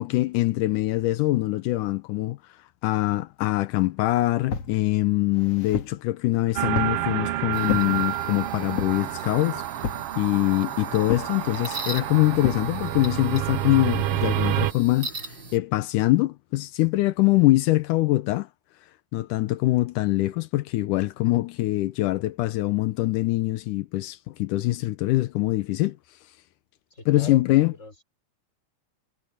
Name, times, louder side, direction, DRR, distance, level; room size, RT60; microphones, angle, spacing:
voice 1, 0.0-2.4 2.8-9.6 10.2-18.5 19.1-26.0 27.1-27.7, left 18 dB, 85° left, 2.3 m, -23 dB
sound 1, 4.5-4.8 5.3-6.0 6.7-7.0 7.7-7.9 8.8-9.1 9.8-10.1 11.1-11.4 12.4-12.7, left 6 dB, 55° left, 2.7 m, -30 dB
sound 2, 6.6-14.7, right 14 dB, 75° right, 1.4 m, -29 dB
sound 3, 7.5-15.6, right 2 dB, 35° right, 3.8 m, -40 dB
voice 2, 26.9-28.0, left 1 dB, 20° left, 6.0 m, -40 dB
omnidirectional pair, 3.6 m